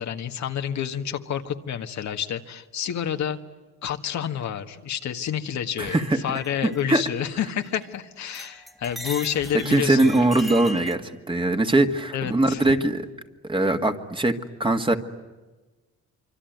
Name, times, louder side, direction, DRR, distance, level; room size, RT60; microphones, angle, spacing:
voice 1, 0.0-3.4 3.8-10.2 12.1-12.7, left 9 dB, 65° left, 6 dB, 1.7 m, -29 dB
sound 1, 5.8-7.9 8.3-10.9, equal, ahead, 1.6 m, -40 dB
voice 2, 5.8-6.2 6.6-7.0 9.7-13.1 13.5-14.9, right 2 dB, 15° right, 6 dB, 1.9 m, -21 dB
25.0 x 25.0 x 9.4 m, 1.2 s
cardioid pair, 90°, 30 cm